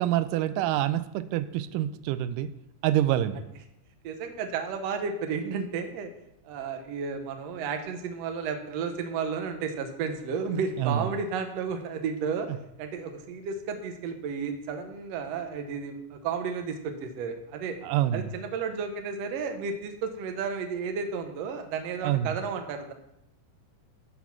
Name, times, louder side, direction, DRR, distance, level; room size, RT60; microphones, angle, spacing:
voice 1, 0.0-2.5 2.8-3.4 10.8-11.0 17.8-18.3 22.0-22.3, right 12 dB, 90° right, 13 dB, 2.1 m, -26 dB
voice 2, 4.0-6.1 6.5-12.5 12.8-17.8 18.1-22.9, right 5 dB, 65° right, 6 dB, 1.8 m, -32 dB
12.5 x 4.2 x 5.8 m, 0.81 s
omnidirectional pair, 3.7 m